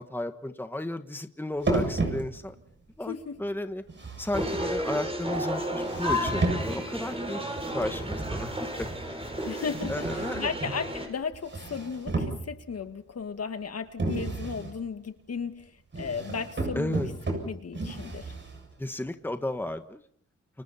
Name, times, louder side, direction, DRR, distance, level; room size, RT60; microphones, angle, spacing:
voice 1, 0.0-2.5 3.0-3.8 4.2-7.4 7.7-8.9 9.4-10.5 16.7-17.1 18.8-20.0, left 1 dB, 5° left, 8 dB, 1.5 m, -33 dB
sound 1, 1.6-2.7 3.9-5.1 5.8-6.9 7.8-8.3 9.7-10.7 11.3-12.8 14.0-14.7 15.9-18.7, right 2 dB, 40° right, 7.6 m, -32 dB
voice 2, 3.1-3.4 9.4-17.0 17.3-18.3, left 5 dB, 55° left, 8 dB, 2.0 m, -35 dB
sound 2, 4.3-11.1, equal, 20° right, 7.0 m, -32 dB
30.0 x 28.5 x 4.4 m, 0.62 s
wide cardioid pair, 105°, 29 cm